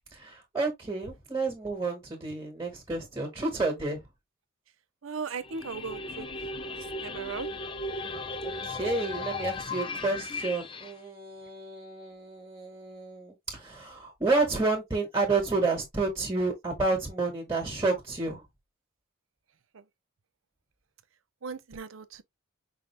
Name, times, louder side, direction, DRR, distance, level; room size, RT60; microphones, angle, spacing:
voice 1, 0.1-4.0 8.4-18.4, right 3 dB, 15° right, 1.7 m, -30 dB
voice 2, 5.0-6.3 7.0-7.5 21.4-22.2, right 5 dB, 75° right, 0.6 m, -37 dB
sound 1, 5.4-10.9, left 3 dB, 25° left, 0.5 m, -36 dB
5.6 x 2.4 x 3.3 m
head